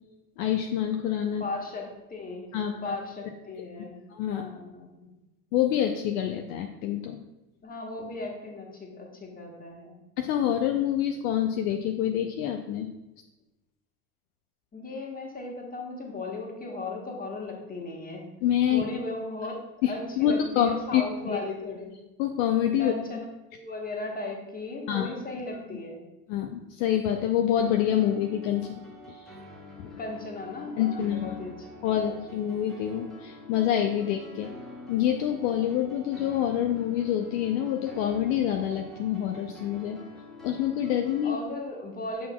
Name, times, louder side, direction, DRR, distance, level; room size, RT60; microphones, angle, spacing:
voice 1, 0.4-1.4 2.5-2.9 4.1-4.4 5.5-7.2 10.2-12.9 18.4-18.8 19.8-21.4 22.2-22.9 24.9-25.1 26.3-28.8 29.1-29.2 30.8-31.3 31.8-34.5 34.9-40.0 40.4-41.4, left 10 dB, 55° left, 4 dB, 0.6 m, -26 dB
voice 2, 1.4-2.5 2.8-4.0 4.3-5.1 7.6-10.0 14.7-18.2 18.7-21.9 22.8-23.3 23.5-26.0 30.0-32.1 41.2-42.3, left 2 dB, 15° left, 0 dB, 1.4 m, -37 dB
sound 1, 27.6-41.3, left 2 dB, ahead, 1.1 m, -46 dB
6.9 x 6.3 x 2.3 m, 1.0 s
hypercardioid pair, 80°, 49 cm